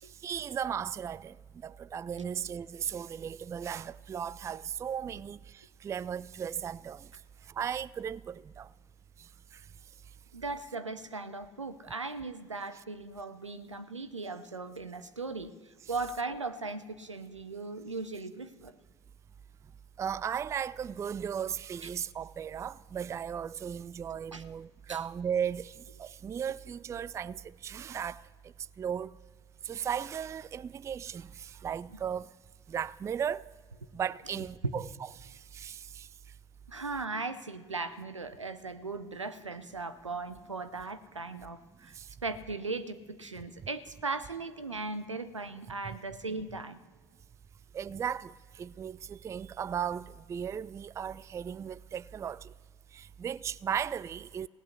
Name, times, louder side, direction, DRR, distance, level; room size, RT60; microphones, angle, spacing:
voice 1, 0.0-7.1 7.5-8.7 9.2-9.6 20.0-29.2 29.6-32.3 32.7-33.5 33.9-34.9 35.2-36.1 42.0-42.1 47.7-52.5 52.9-54.5, right 8 dB, 20° right, 0.3 m, -36 dB
voice 2, 10.3-18.7 24.3-24.4 24.9-25.0 27.2-27.3 36.7-42.0 42.2-46.8, right 3 dB, 85° right, 0.7 m, -38 dB
17.5 x 8.5 x 8.3 m
figure-of-eight pair, 60°, 15 cm